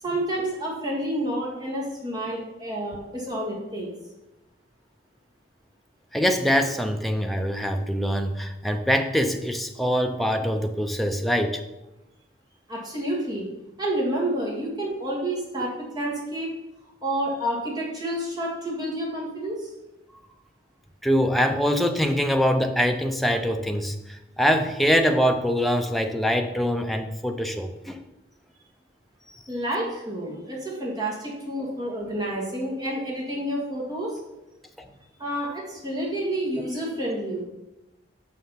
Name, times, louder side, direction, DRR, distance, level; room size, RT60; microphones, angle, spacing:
voice 1, 0.0-3.9 12.7-13.5 13.8-16.5 17.0-19.7 29.5-34.2 35.2-37.4, right 1 dB, 25° right, -4 dB, 2.1 m, -29 dB
voice 2, 6.1-11.6 21.0-28.0 34.8-34.9, equal, ahead, 4 dB, 0.5 m, -24 dB
6.3 x 5.8 x 5.8 m, 0.98 s
head